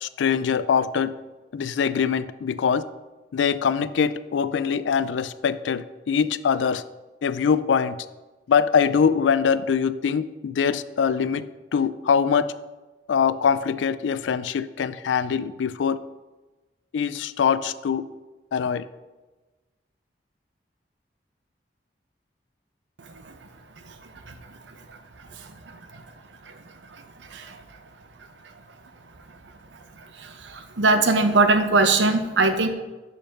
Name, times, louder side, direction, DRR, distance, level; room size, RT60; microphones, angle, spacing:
voice 1, 0.0-1.1 1.5-2.8 3.3-6.8 7.2-8.0 8.5-11.4 11.7-12.5 13.1-16.0 16.9-18.0 18.5-18.8, left 6 dB, 90° left, 15 dB, 0.4 m, -23 dB
voice 2, 30.8-32.7, right 3 dB, 85° right, 8 dB, 0.7 m, -19 dB
6.7 x 5.1 x 5.9 m, 1.2 s
head